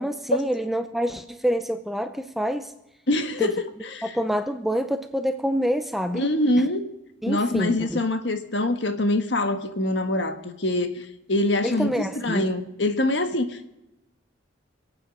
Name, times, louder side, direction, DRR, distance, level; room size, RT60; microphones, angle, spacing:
voice 1, 0.0-2.7 3.4-3.5 4.0-6.3 7.2-8.0 11.6-12.5, equal, ahead, 0.5 m, -27 dB
voice 2, 3.1-3.6 3.9-4.0 6.1-6.8 7.3-11.9 12.2-13.7, left 1 dB, 60° left, 1.5 m, -24 dB
26.5 x 8.9 x 5.2 m
head